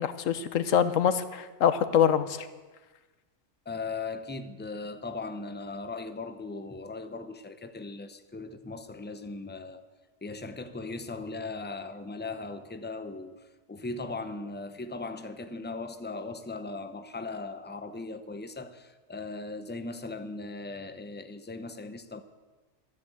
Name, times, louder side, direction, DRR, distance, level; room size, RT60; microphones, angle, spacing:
voice 1, 0.0-2.5, left 8 dB, 85° left, 1.2 m, -25 dB
voice 2, 3.7-9.9 10.2-13.4 13.7-22.2, left 3 dB, 10° left, 0.5 m, -38 dB
13.0 x 10.0 x 7.8 m
omnidirectional pair, 1.3 m